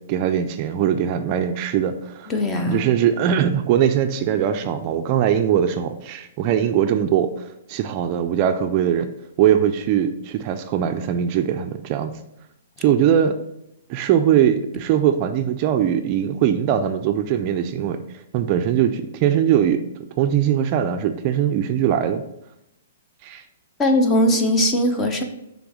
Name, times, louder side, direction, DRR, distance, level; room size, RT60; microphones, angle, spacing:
voice 1, 0.1-2.3 2.7-9.1 9.4-12.2 12.8-13.4 13.9-18.0 18.3-19.8 20.2-22.2 23.2-23.4, right 9 dB, 35° right, 8 dB, 0.4 m, -21 dB
voice 2, 2.3-2.9 23.8-25.2, left 1 dB, 15° left, 5 dB, 0.7 m, -19 dB
6.0 x 3.5 x 4.8 m, 0.83 s
hypercardioid pair, 150°, 0 cm